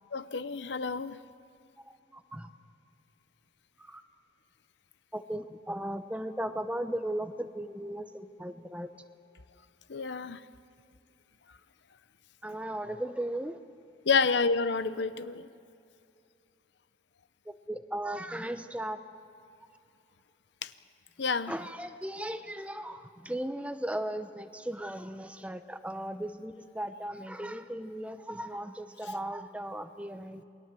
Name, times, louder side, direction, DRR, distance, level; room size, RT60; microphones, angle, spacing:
voice 1, 0.1-1.2 9.9-10.4 14.0-15.5 20.6-20.7 21.2-21.5, left 4 dB, 70° left, 14 dB, 0.7 m, -29 dB
voice 2, 2.1-2.5 3.8-4.0 5.1-8.9 12.4-13.6 17.5-19.0 21.5-30.4, right 1 dB, 5° right, 9 dB, 0.8 m, -37 dB
28.5 x 21.5 x 7.6 m, 2.6 s
head